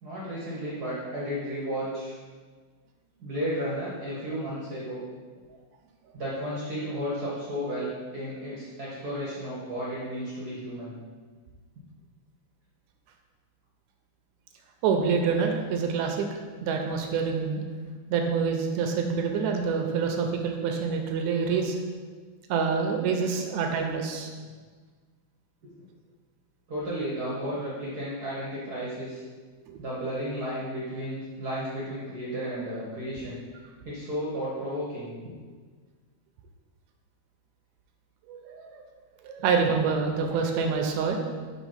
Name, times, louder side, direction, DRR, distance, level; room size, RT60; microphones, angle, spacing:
voice 1, 0.0-2.2 3.2-5.0 6.1-10.9 26.7-29.2 29.8-33.4 33.8-35.1, equal, 60° right, -7 dB, 1.0 m, -33 dB
voice 2, 14.8-16.3 16.6-17.6 18.1-21.8 22.5-24.3 29.7-29.8 38.3-38.8 39.2-41.2, right 5 dB, 80° right, 3 dB, 1.8 m, -26 dB
6.1 x 3.2 x 5.6 m, 1.5 s
omnidirectional pair, 3.5 m